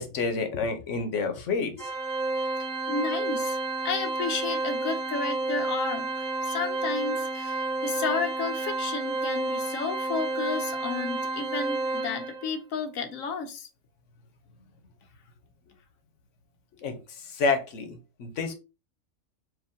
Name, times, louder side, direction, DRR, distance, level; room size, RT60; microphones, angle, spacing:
voice 1, 0.0-1.9 16.8-18.5, left 4 dB, 70° left, 6 dB, 1.2 m, -29 dB
Organ, 1.8-12.5, right 2 dB, 75° right, 1.2 m, -30 dB
voice 2, 2.9-3.6 3.8-13.7, left 5 dB, 85° left, 6 dB, 1.2 m, -32 dB
4.8 x 2.5 x 3.6 m, 0.29 s
omnidirectional pair, 1.4 m